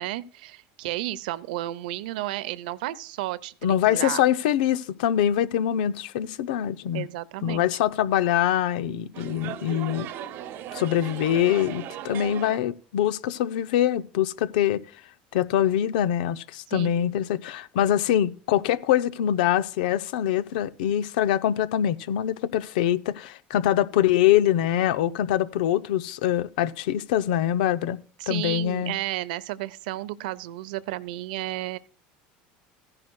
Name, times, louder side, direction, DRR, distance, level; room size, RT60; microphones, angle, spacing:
voice 1, 0.0-3.5 3.9-4.2 6.9-7.7 16.7-17.1 28.2-31.8, right 16 dB, 85° right, 0.6 m, -32 dB
voice 2, 3.6-7.1 7.4-10.1 10.7-14.8 15.3-28.0 28.3-28.9, left 11 dB, 90° left, 0.6 m, -24 dB
sound 1, 9.1-12.6, right 11 dB, 55° right, 0.8 m, -37 dB
15.0 x 10.5 x 2.2 m
supercardioid pair, 125°, 4 cm